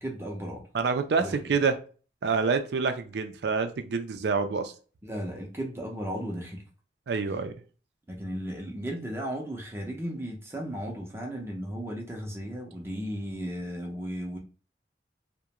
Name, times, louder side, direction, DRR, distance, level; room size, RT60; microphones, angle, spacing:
voice 1, 0.0-0.6 1.2-1.6 5.0-6.6 8.1-14.4, equal, 15° right, 0 dB, 0.5 m, -35 dB
voice 2, 0.7-1.8 2.2-4.7 7.1-7.5, right 5 dB, 70° right, 8 dB, 0.4 m, -27 dB
2.4 x 2.1 x 2.9 m, 0.37 s
head